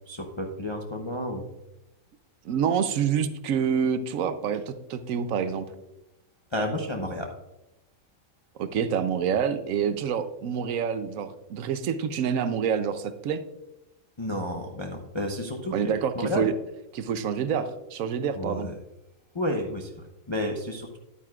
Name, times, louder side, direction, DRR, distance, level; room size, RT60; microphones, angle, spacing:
voice 1, 0.1-1.4 6.5-7.3 14.2-16.5 18.3-18.7 19.3-21.0, left 1 dB, 30° left, 2 dB, 0.5 m, -31 dB
voice 2, 2.4-5.7 8.6-13.4 15.7-16.5 16.9-18.7, right 7 dB, 70° right, 11 dB, 1.0 m, -27 dB
10.0 x 9.0 x 2.4 m, 0.93 s
omnidirectional pair, 1.6 m